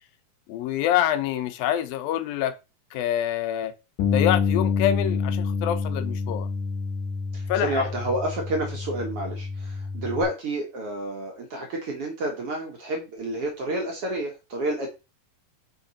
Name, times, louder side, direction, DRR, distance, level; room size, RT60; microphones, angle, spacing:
voice 1, 0.5-2.6 2.9-3.7 4.1-6.5 7.5-7.9, left 11 dB, 85° left, 2.5 m, -26 dB
Bass guitar, 4.0-10.2, left 5 dB, 70° left, 3.0 m, -27 dB
voice 2, 7.3-14.9, right 1 dB, 55° right, 1.9 m, -30 dB
6.3 x 5.2 x 4.2 m
omnidirectional pair, 4.1 m